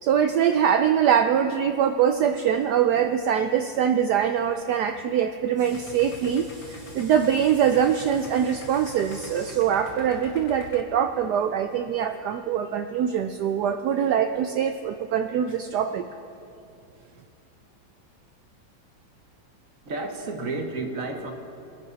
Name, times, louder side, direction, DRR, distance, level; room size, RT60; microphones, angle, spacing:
voice 1, 0.0-16.0, right 8 dB, 75° right, 7 dB, 1.0 m, -23 dB
Idling, 5.7-10.8, left 4 dB, 85° left, 1.8 m, -44 dB
voice 2, 19.8-21.3, right 3 dB, 45° right, 3 dB, 1.6 m, -31 dB
23.0 x 10.5 x 4.0 m, 2.7 s
omnidirectional pair, 2.1 m